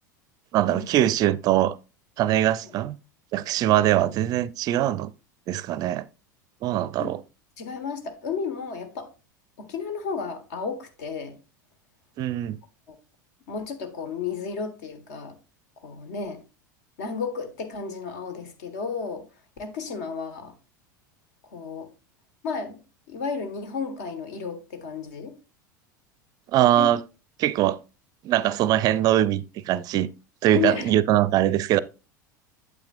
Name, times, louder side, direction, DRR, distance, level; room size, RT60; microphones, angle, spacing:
voice 1, 0.5-1.8 2.2-3.0 3.3-5.1 5.5-6.1 6.6-7.2 12.2-12.6 26.5-27.0 27.4-27.8 28.2-30.1 30.4-31.8, right 13 dB, 40° right, 0.4 m, -22 dB
voice 2, 7.6-9.1 9.6-11.4 12.9-13.0 13.5-15.4 15.8-16.4 17.0-19.3 19.6-20.5 21.4-21.9 22.4-22.8 23.1-25.4 26.6-26.9 30.5-31.0, left 5 dB, 60° left, 1.6 m, -32 dB
8.7 x 7.9 x 2.6 m
figure-of-eight pair, 80°, 10 cm